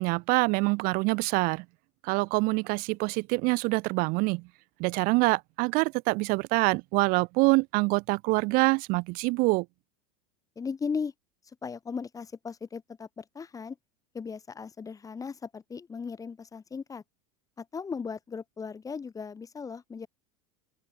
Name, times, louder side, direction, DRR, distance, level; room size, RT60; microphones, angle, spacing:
voice 1, 0.0-1.6 2.0-4.4 4.8-9.7, right 26 dB, 50° right, 1.0 m, -25 dB
voice 2, 10.6-11.1 11.6-13.8 14.1-17.0 17.6-20.1, left 5 dB, 20° left, 4.9 m, -37 dB
open air
supercardioid pair, 125°, 18 cm